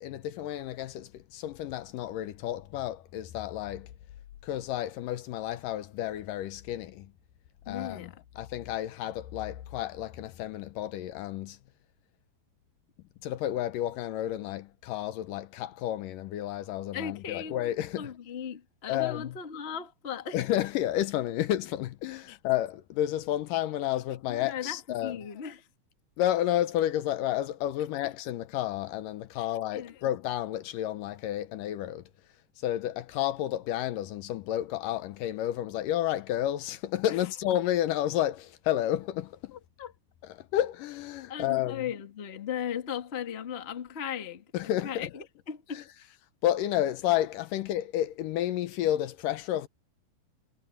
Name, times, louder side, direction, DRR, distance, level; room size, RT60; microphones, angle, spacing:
voice 1, 0.0-3.9 4.4-7.1 7.7-11.6 13.2-18.1 18.9-19.4 20.3-25.2 26.2-32.1 32.6-39.6 40.2-41.8 44.5-45.1 45.7-45.8 46.4-49.7, left 12 dB, 75° left, 2.4 m, -31 dB
voice 2, 7.7-8.1 16.9-17.6 18.0-20.4 22.3-22.4 24.3-25.6 29.7-29.9 37.1-37.2 39.5-39.9 41.3-44.4 44.8-45.8, left 8 dB, 35° left, 1.0 m, -37 dB
omnidirectional pair, 4.0 m